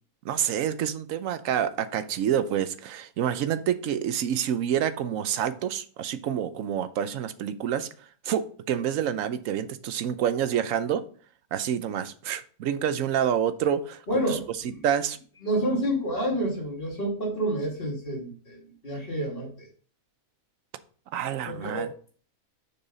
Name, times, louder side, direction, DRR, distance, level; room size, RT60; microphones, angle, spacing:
voice 1, 0.2-7.9 8.2-11.0 11.5-14.4 14.8-15.2 21.1-21.9, right 9 dB, 70° right, 1.1 m, -28 dB
voice 2, 14.1-14.8 15.4-19.7 21.5-21.9, right 1 dB, 40° left, 2.4 m, -29 dB
6.9 x 5.6 x 3.9 m
omnidirectional pair, 1.5 m